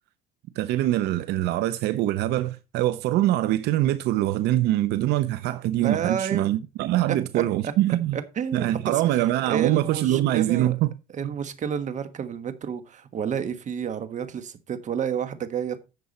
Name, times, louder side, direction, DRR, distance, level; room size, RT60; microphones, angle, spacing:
voice 1, 0.6-8.2 8.5-10.9 11.2-11.3, right 14 dB, 80° right, 0.6 m, -24 dB
voice 2, 5.8-6.5 7.1-7.7 8.1-9.0 9.5-10.7 11.1-15.8, right 8 dB, 45° right, 1.3 m, -30 dB
10.5 x 6.9 x 4.2 m
cardioid pair, 110°, 17 cm